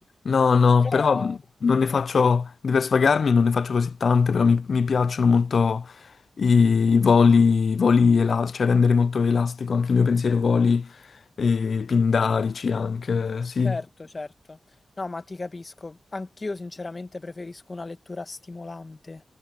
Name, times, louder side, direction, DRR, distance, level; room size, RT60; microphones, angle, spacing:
voice 1, 0.2-1.3 1.6-5.9 6.4-10.9 11.4-13.8, left 5 dB, 70° left, 0.6 m, -20 dB
voice 2, 0.8-1.4 13.6-14.6 15.0-19.2, left 3 dB, 40° left, 1.8 m, -35 dB
cardioid pair, 55°, 0 cm